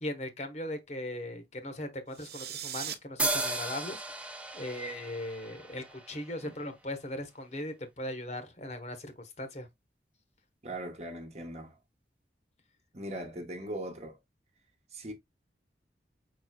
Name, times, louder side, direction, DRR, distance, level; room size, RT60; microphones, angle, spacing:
voice 1, 0.0-4.0 4.5-9.7, left 1 dB, 40° left, 1.0 m, -38 dB
sound 1, 2.1-2.9, right 10 dB, 60° right, 0.7 m, -39 dB
sound 2, 3.2-6.7, right 2 dB, 10° right, 0.6 m, -35 dB
voice 2, 10.6-11.8 12.9-14.2 14.9-15.1, right 1 dB, 35° right, 1.0 m, -39 dB
5.4 x 4.3 x 2.2 m
head